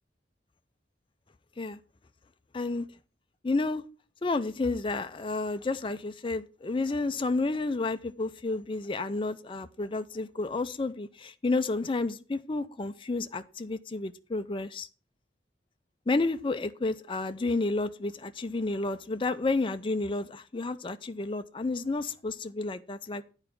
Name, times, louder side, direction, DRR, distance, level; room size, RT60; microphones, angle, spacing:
voice 1, 2.5-2.8 3.4-3.8 4.2-14.9 16.1-23.2, left 3 dB, 25° left, 0.5 m, -31 dB
9.1 x 4.8 x 5.9 m
head